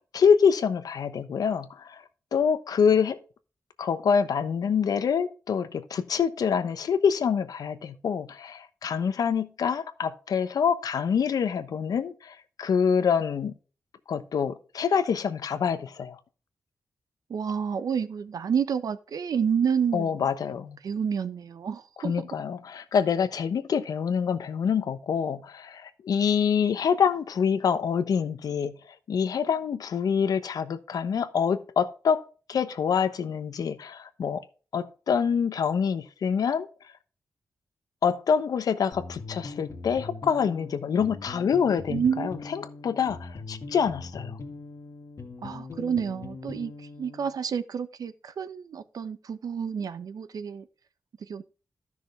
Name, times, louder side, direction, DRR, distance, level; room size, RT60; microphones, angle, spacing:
voice 1, 0.1-2.0 2.3-3.2 3.8-13.5 14.1-16.2 19.9-20.8 22.0-28.8 29.1-32.2 32.5-34.4 34.7-36.7 38.0-44.4, left 7 dB, 90° left, 1.0 m, -26 dB
voice 2, 17.3-20.2 20.8-22.3 41.9-42.5 45.4-50.7 51.3-51.4, right 7 dB, 80° right, 0.9 m, -29 dB
sound 1, 38.9-47.4, left 3 dB, 50° left, 1.8 m, -41 dB
13.5 x 6.2 x 3.4 m
wide cardioid pair, 120°, 6 cm